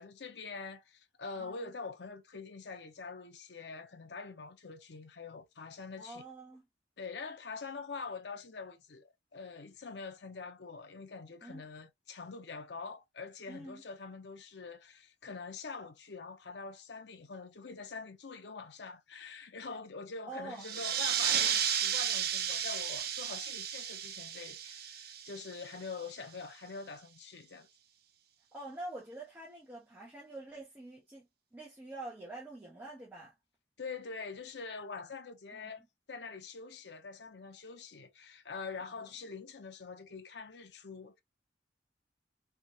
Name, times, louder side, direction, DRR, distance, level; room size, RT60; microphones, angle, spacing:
voice 1, 0.0-6.2 7.0-27.7 33.8-41.2, left 4 dB, 70° left, 0.8 m, -45 dB
voice 2, 6.0-6.6 11.4-11.6 13.5-13.8 20.3-20.6 28.5-33.3 35.5-35.7 38.8-38.9, right 2 dB, 10° right, 1.4 m, -46 dB
sound 1, 20.6-25.8, right 9 dB, 60° right, 0.7 m, -33 dB
3.6 x 3.4 x 2.8 m
head